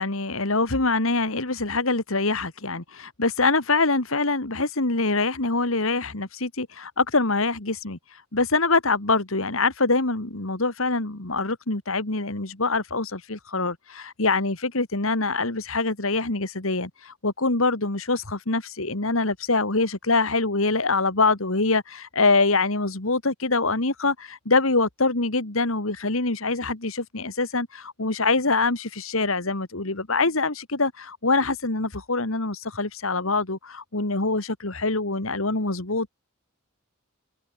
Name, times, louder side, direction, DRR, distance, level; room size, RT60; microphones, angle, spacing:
voice 1, 0.0-36.1, left 3 dB, 70° left, 2.4 m, -24 dB
head